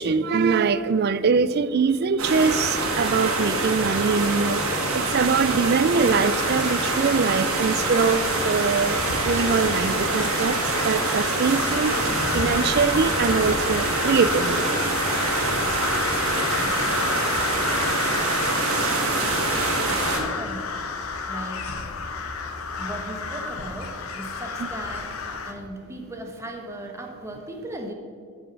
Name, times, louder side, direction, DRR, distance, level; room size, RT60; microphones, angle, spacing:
voice 1, 0.0-4.6 4.9-10.6 10.8-12.0 12.3-14.7, right 5 dB, 50° right, 15 dB, 0.4 m, -23 dB
sound 1, 2.2-20.2, right 3 dB, 85° right, 1.6 m, -25 dB
sound 2, 6.1-25.5, left 4 dB, 80° left, 0.9 m, -31 dB
voice 2, 16.6-17.1 17.3-20.8 21.3-21.8 22.8-27.9, right 1 dB, 15° right, 2 dB, 1.1 m, -38 dB
12.5 x 5.2 x 6.0 m, 2.2 s
head